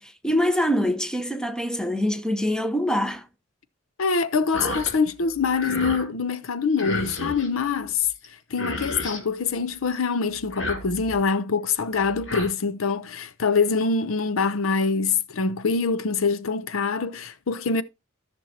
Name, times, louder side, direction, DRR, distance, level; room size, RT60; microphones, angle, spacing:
voice 1, 0.0-3.3, equal, 5° left, 0.8 m, -24 dB
voice 2, 4.0-8.1 8.5-17.8, left 5 dB, 85° left, 0.6 m, -24 dB
sound 1, 4.5-4.9 5.3-6.1 6.8-7.5 8.2-8.3 8.5-9.2 10.4-11.2 12.0-12.5, left 2 dB, 65° left, 2.4 m, -31 dB
14.0 x 6.2 x 2.8 m
head